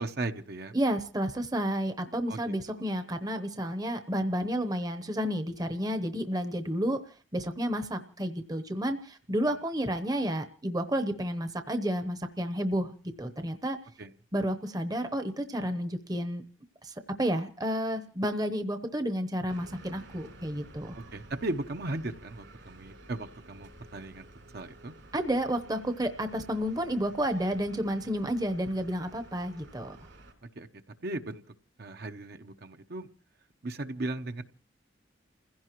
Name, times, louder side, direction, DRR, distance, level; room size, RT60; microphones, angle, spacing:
voice 1, 0.0-0.7 2.3-2.4 2.7-2.8 14.0-14.1 20.9-24.3 24.5-24.9 30.6-30.7 31.0-31.4 31.8-33.1 33.6-34.4, right 2 dB, 55° right, 7 dB, 0.8 m, -36 dB
voice 2, 0.7-7.0 7.3-13.8 14.3-16.4 16.8-21.0 25.1-30.0, equal, 20° right, 8 dB, 0.8 m, -31 dB
sound 1, 19.5-30.3, right 1 dB, 75° right, 3.7 m, -52 dB
29.5 x 16.0 x 3.0 m, 0.39 s
head